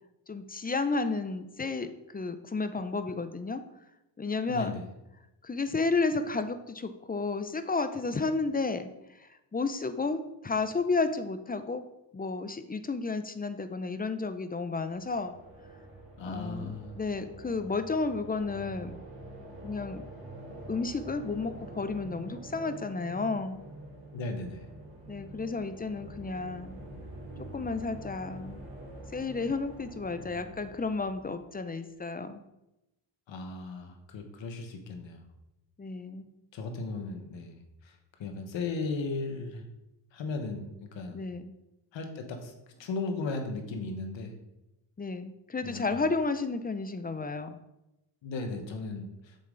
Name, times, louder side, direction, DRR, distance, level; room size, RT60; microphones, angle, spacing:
voice 1, 0.3-3.6 4.2-4.8 5.4-8.9 9.2-11.9 12.1-15.3 16.2-19.0 19.6-20.1 20.7-23.6 25.1-26.8 27.5-28.6 29.1-32.4 35.8-36.3 41.1-41.5 45.0-47.6, left 3 dB, 20° left, 10 dB, 0.5 m, -32 dB
voice 2, 4.5-4.8 16.2-17.0 24.1-24.7 30.2-30.5 33.3-35.2 36.5-37.6 38.2-39.6 40.1-41.2 41.9-42.5 42.8-44.3 45.6-46.0 48.2-49.1, left 3 dB, 75° left, 5 dB, 1.3 m, -36 dB
sound 1, 14.9-31.8, right 1 dB, 30° right, 2.6 m, -46 dB
7.1 x 5.6 x 3.9 m, 0.91 s
cardioid pair, 85°, 45 cm